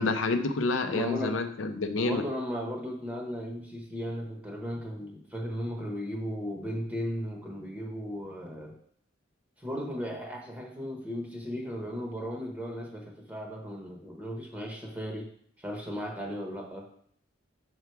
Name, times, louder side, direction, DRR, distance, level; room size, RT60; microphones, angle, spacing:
voice 1, 0.0-2.2, left 3 dB, 80° left, 8 dB, 0.6 m, -28 dB
voice 2, 0.9-1.4 2.0-8.7 9.6-15.3 15.6-16.9, equal, 10° right, -1 dB, 1.0 m, -36 dB
6.0 x 4.6 x 4.7 m, 0.63 s
head